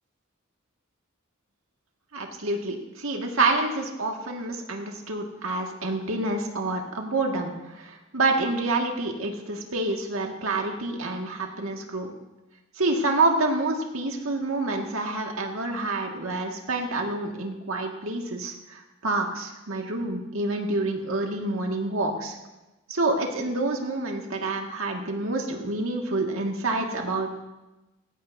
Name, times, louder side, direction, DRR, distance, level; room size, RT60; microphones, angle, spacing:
voice 1, 2.1-12.1 12.8-22.4 22.9-27.3, right 2 dB, 80° right, 1 dB, 2.0 m, -28 dB
19.0 x 16.0 x 2.8 m, 1.0 s
head